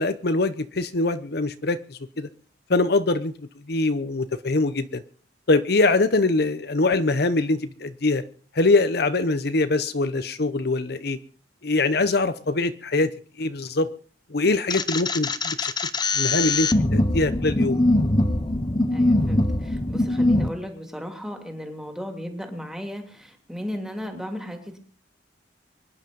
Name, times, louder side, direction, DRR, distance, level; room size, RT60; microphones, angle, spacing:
voice 1, 0.0-2.3 2.7-3.3 3.7-5.0 5.5-8.2 8.5-11.2 11.6-13.1 13.4-13.9 14.3-15.7 16.2-17.8, left 3 dB, 60° left, 11 dB, 0.9 m, -23 dB
sound 1, 14.7-20.5, left 2 dB, 25° left, 0.9 m, -22 dB
voice 2, 18.9-24.8, equal, 5° right, 4 dB, 2.8 m, -35 dB
24.0 x 10.5 x 5.3 m, 0.44 s
head